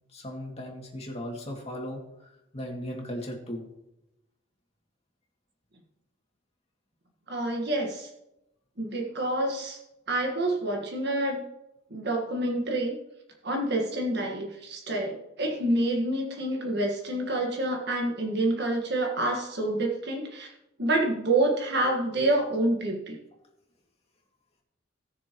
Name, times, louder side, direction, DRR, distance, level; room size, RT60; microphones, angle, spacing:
voice 1, 0.1-3.6, equal, 35° left, 0 dB, 2.3 m, -37 dB
voice 2, 7.3-8.1 8.8-9.8 10.1-11.4 11.9-12.9 13.4-20.5 20.8-23.2, right 1 dB, 60° right, 1 dB, 1.6 m, -27 dB
18.5 x 6.8 x 3.0 m, 0.89 s
head